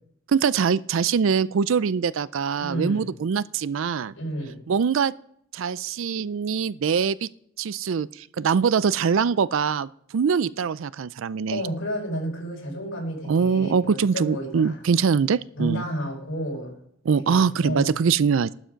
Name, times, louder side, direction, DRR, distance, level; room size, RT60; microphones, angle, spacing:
voice 1, 0.3-4.1 4.7-5.1 5.5-7.3 7.6-11.6 13.3-15.8 17.1-18.5, right 6 dB, 75° right, 0.4 m, -23 dB
voice 2, 2.6-3.1 4.1-4.6 11.5-14.8 15.5-16.7 17.3-17.9, equal, 80° left, 5.0 m, -31 dB
12.0 x 11.5 x 5.1 m
head